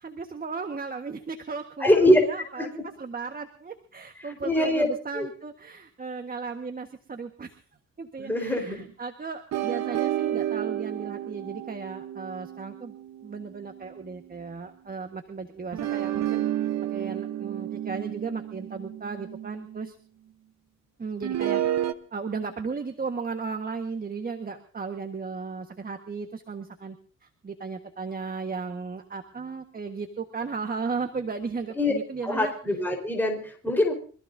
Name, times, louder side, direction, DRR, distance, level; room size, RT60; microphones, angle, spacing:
voice 1, 0.0-7.5 8.0-12.9 13.2-16.4 16.9-19.9 21.0-21.6 22.1-27.0 27.4-32.5, right 4 dB, 30° right, 6 dB, 1.5 m, -35 dB
voice 2, 1.8-2.2 2.6-2.8 4.2-4.9 5.1-5.3 8.2-8.8 31.8-31.9 32.2-33.9, left 1 dB, 5° left, 2 dB, 4.4 m, -23 dB
sound 1, 9.5-14.1 15.7-19.9 21.2-21.9, right 12 dB, 65° right, 1.1 m, -31 dB
25.5 x 15.0 x 2.7 m, 0.42 s
cardioid pair, 90°, 30 cm